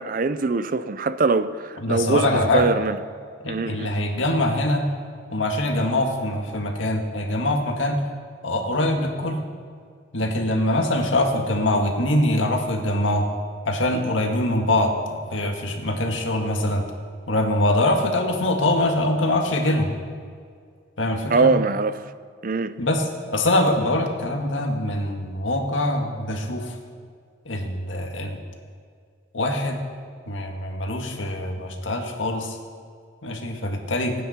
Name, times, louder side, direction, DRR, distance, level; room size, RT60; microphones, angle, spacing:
voice 1, 0.0-3.0 3.5-3.9 21.3-21.9 22.4-22.7, right 4 dB, 45° right, 0.5 m, -22 dB
voice 2, 1.8-2.7 3.4-4.9 5.3-8.0 8.4-9.4 10.1-13.3 13.7-14.9 15.3-16.8 17.3-19.9 21.0-21.5 22.8-23.1 23.3-26.8 27.5-28.4 29.3-29.8 30.3-32.6 33.2-34.1, left 1 dB, 90° left, 1.8 m, -23 dB
24.5 x 9.3 x 4.4 m
head